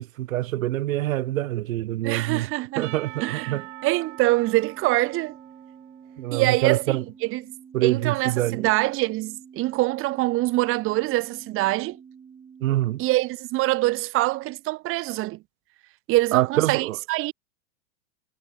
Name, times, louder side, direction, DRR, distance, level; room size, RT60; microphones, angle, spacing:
voice 1, 0.0-2.5 2.8-3.6 6.2-7.0 7.7-8.7 12.6-13.0 16.3-17.0, right 15 dB, 90° right, 1.4 m, -25 dB
voice 2, 2.0-2.9 3.2-5.4 6.3-7.5 7.8-12.0 13.0-15.4 16.1-17.3, right 19 dB, 35° right, 1.0 m, -24 dB
sound 1, 2.7-13.2, right 6 dB, 15° right, 3.1 m, -48 dB
Percussion / Church bell, 2.8-6.5, right 21 dB, 65° right, 7.8 m, -43 dB
supercardioid pair, 145°, 40 cm